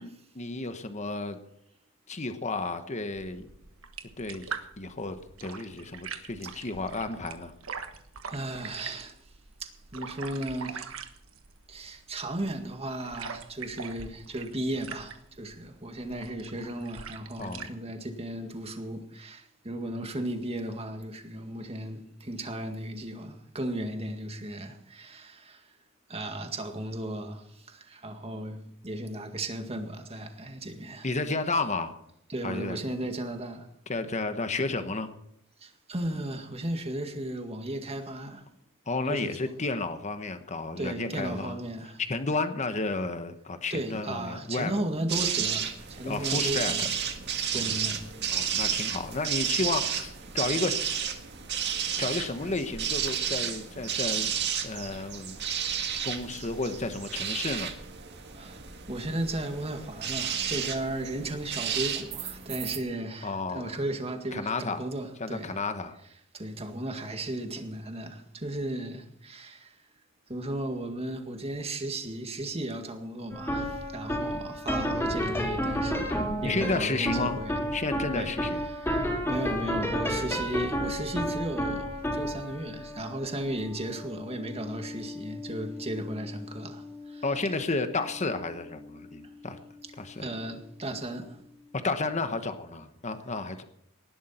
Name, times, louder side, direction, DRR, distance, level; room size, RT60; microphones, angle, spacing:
voice 1, 0.0-1.4 2.1-3.5 4.2-4.5 4.8-7.5 17.4-17.7 31.0-31.9 32.4-32.8 33.9-35.1 38.9-41.6 42.1-44.7 46.0-46.7 48.3-50.8 52.0-54.3 54.6-55.4 56.0-57.7 63.2-63.8 64.3-64.8 65.2-66.0 76.4-77.4 77.7-78.6 87.2-89.6 90.0-90.2 91.8-93.6, left 3 dB, 35° left, 1.1 m, -32 dB
sound 1, 3.1-17.7, right 6 dB, 75° right, 1.4 m, -43 dB
voice 2, 8.3-9.3 9.6-11.0 11.7-25.8 26.1-31.1 32.3-33.7 35.6-38.5 39.1-39.3 40.8-42.0 43.7-46.9 47.5-48.1 58.3-65.6 66.3-69.8 70.3-77.6 78.1-78.3 78.6-87.2 89.2-89.3 90.2-91.4, right 1 dB, 30° right, 2.0 m, -35 dB
sound 2, 45.1-62.8, right 8 dB, 55° right, 1.8 m, -32 dB
sound 3, 73.3-90.5, equal, 10° left, 4.2 m, -33 dB
18.5 x 12.0 x 4.4 m
head